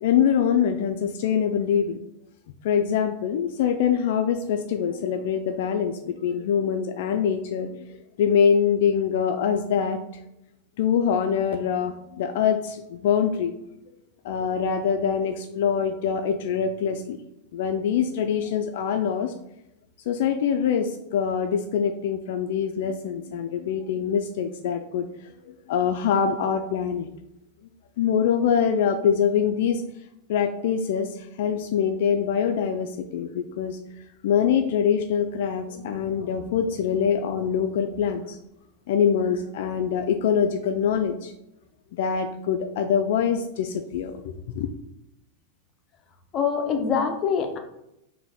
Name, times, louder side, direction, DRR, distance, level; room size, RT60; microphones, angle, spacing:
voice 1, 0.0-2.0 2.6-10.0 10.8-13.5 14.2-17.2 17.5-19.3 20.1-25.1 25.4-27.1 28.0-29.8 30.3-33.8 34.2-38.4 38.9-41.3 41.9-44.7, left 7 dB, 70° left, 7 dB, 0.3 m, -24 dB
voice 2, 46.3-47.6, left 6 dB, 30° left, 4 dB, 0.7 m, -24 dB
3.8 x 2.7 x 3.5 m, 0.83 s
supercardioid pair, 135°, 0 cm